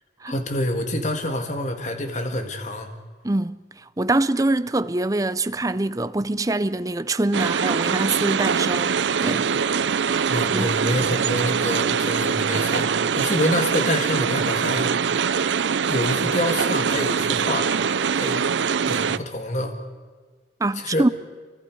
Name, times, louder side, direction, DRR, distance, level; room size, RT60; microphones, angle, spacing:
voice 1, 0.3-2.9 10.3-12.9 13.2-14.9 15.9-17.7 18.1-18.5 18.9-19.8 20.8-21.1, left 1 dB, 40° left, 1.9 m, -26 dB
voice 2, 3.2-3.6 4.0-9.5 10.5-10.9 20.6-21.1, right 2 dB, 20° right, 0.5 m, -24 dB
sound 1, 7.3-19.2, right 6 dB, 90° right, 0.6 m, -23 dB
28.5 x 24.5 x 4.7 m
head